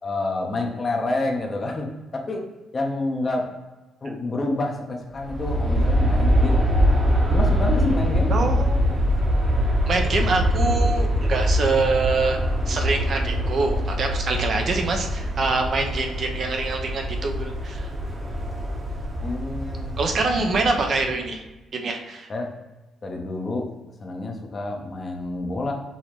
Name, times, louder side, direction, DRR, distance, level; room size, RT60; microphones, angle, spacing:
voice 1, 0.0-1.9 2.1-2.5 2.7-3.5 4.0-6.9 7.3-8.3 19.2-19.9 22.3-22.5 23.0-23.7 24.0-25.7, left 2 dB, 35° left, 2 dB, 0.9 m, -28 dB
Aircraft, 5.1-21.2, equal, 30° right, 1.0 m, -23 dB
voice 2, 8.3-9.0 9.9-12.4 12.7-17.9 20.0-21.4 21.7-22.3, right 3 dB, 55° right, 3 dB, 0.7 m, -25 dB
5.6 x 3.1 x 3.1 m, 1.1 s
cardioid pair, 90°, 0 cm